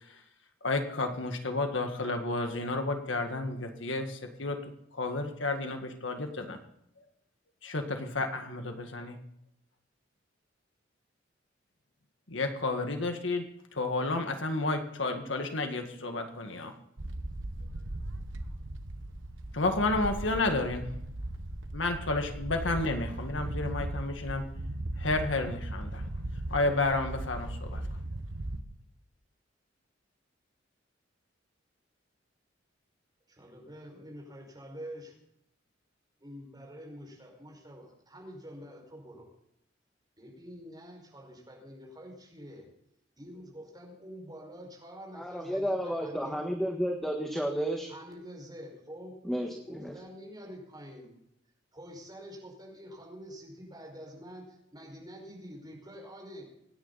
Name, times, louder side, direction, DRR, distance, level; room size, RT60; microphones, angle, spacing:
voice 1, 0.6-6.6 7.6-9.2 12.3-13.4 13.7-16.7 19.5-20.9 21.7-24.4 25.0-26.0 26.5-27.8, left 2 dB, 70° left, 5 dB, 1.8 m, -31 dB
sound 1, 17.0-28.6, right 1 dB, 75° right, 1.4 m, -38 dB
voice 2, 33.3-35.1 36.2-39.3 40.2-42.6 43.2-46.4 47.9-49.2 49.7-51.1 51.7-56.5, equal, 20° right, 0 dB, 5.5 m, -47 dB
voice 3, 45.1-47.9 49.2-50.0, equal, ahead, 1 dB, 1.5 m, -32 dB
25.5 x 10.0 x 4.2 m, 0.78 s
head